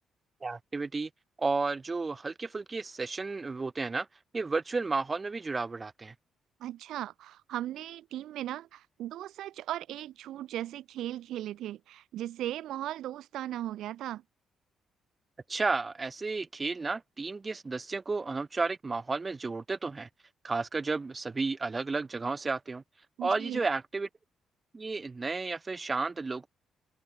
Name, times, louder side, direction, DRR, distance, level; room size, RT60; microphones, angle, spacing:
voice 1, 0.4-1.1 1.4-4.1 4.3-6.1 15.5-20.1 20.4-22.8 23.2-24.1 24.7-26.5, right 3 dB, 25° right, 1.2 m, -32 dB
voice 2, 6.6-14.2 23.2-23.6, right 13 dB, 80° right, 0.5 m, -37 dB
open air
cardioid pair, 90°, 0 cm